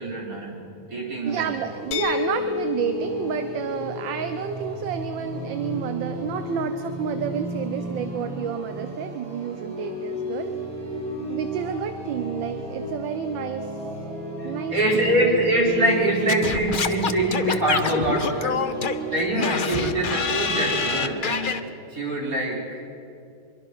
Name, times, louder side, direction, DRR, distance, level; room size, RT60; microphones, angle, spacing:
voice 1, 0.0-1.5 14.4-18.6 19.1-21.6 21.9-22.9, right 1 dB, 40° right, -2 dB, 5.0 m, -24 dB
sound 1, 1.2-21.1, equal, 5° left, 7.8 m, -34 dB
voice 2, 1.2-10.6 11.3-13.7 14.4-15.2, right 8 dB, 70° right, 9 dB, 1.5 m, -30 dB
sound 2, 1.9-7.7, left 7 dB, 75° left, 1.6 m, -33 dB
Singing / Scratching (performance technique), 16.3-21.6, left 5 dB, 60° left, 0.5 m, -26 dB
24.5 x 23.0 x 6.2 m, 2.6 s
omnidirectional pair, 2.3 m